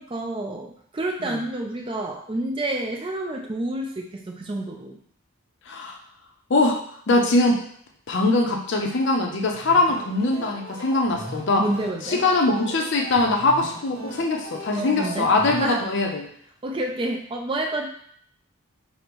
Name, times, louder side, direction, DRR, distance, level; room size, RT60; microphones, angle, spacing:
voice 1, 0.0-5.0 11.6-12.2 14.8-15.3 15.6-15.8 16.6-17.9, right 1 dB, 25° right, 2 dB, 0.4 m, -29 dB
voice 2, 5.7-6.0 6.5-7.6 8.1-11.6 12.0-16.3, left 2 dB, 55° left, 1 dB, 0.5 m, -22 dB
sound 1, 9.5-15.6, right 1 dB, 50° right, 1.4 m, -39 dB
5.0 x 2.1 x 3.0 m, 0.63 s
head